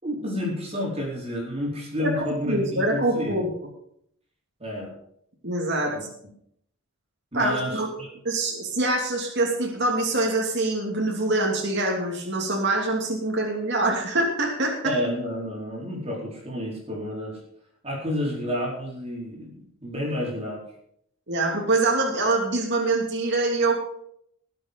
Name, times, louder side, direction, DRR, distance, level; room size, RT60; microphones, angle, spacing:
voice 1, 0.0-3.4 4.6-4.9 5.9-6.0 7.3-8.1 14.8-17.4 17.8-20.6, equal, 30° right, -2 dB, 4.5 m, -30 dB
voice 2, 2.0-3.5 5.4-6.1 7.3-7.9 8.2-14.9 21.3-23.8, right 2 dB, 55° right, -1 dB, 2.9 m, -24 dB
19.5 x 7.9 x 5.3 m, 0.70 s
head